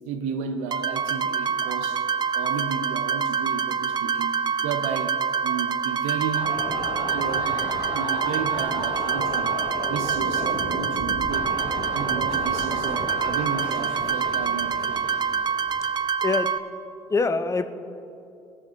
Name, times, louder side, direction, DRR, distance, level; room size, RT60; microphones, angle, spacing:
voice 1, 0.0-2.0 2.3-6.6 7.0-9.5 9.9-11.5 11.9-15.0, right 6 dB, 80° right, 0.8 m, -33 dB
sound 1, 0.7-16.6, right 6 dB, 40° right, 0.5 m, -26 dB
sound 2, 6.3-15.9, left 1 dB, 85° left, 2.4 m, -34 dB
voice 2, 15.8-16.5 17.1-17.7, left 3 dB, 25° left, 0.7 m, -25 dB
17.0 x 6.6 x 4.5 m
supercardioid pair, 65°, 11 cm